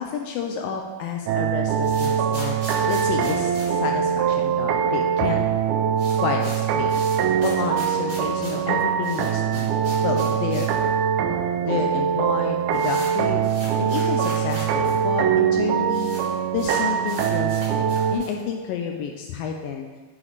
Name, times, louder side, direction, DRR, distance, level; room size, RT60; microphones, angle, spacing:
voice 1, 0.0-5.4 6.2-6.4 6.7-7.0 7.4-9.8 10.0-10.7 11.6-13.4 13.8-16.1 16.5-19.9, left 7 dB, 80° left, 2 dB, 2.0 m, -30 dB
sound 1, 1.3-18.2, right 8 dB, 80° right, 2.3 m, -23 dB
sound 2, 1.7-4.7 4.9-5.0 5.3-5.4 5.7-10.8 11.1-11.2 11.9-12.0 12.3-14.9 15.2-15.3 15.5-16.2 16.6-18.4, right 1 dB, 30° right, 2.8 m, -39 dB
8.9 x 5.2 x 4.0 m, 1.2 s
omnidirectional pair, 4.5 m